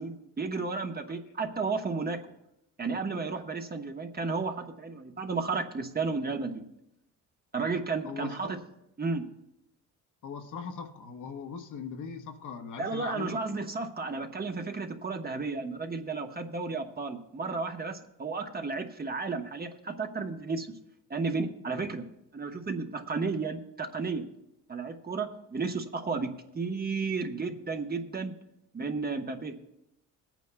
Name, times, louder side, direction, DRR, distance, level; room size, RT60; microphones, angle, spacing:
voice 1, 0.0-2.2 2.8-6.6 7.5-8.6 9.0-9.2 12.8-20.7 21.1-22.0 22.3-24.2 24.7-28.3 28.7-29.5, right 4 dB, 30° right, 4 dB, 1.1 m, -33 dB
voice 2, 8.0-8.5 10.2-13.3, left 6 dB, 65° left, 4 dB, 1.2 m, -40 dB
24.5 x 9.2 x 2.3 m, 0.82 s
cardioid pair, 85°, 34 cm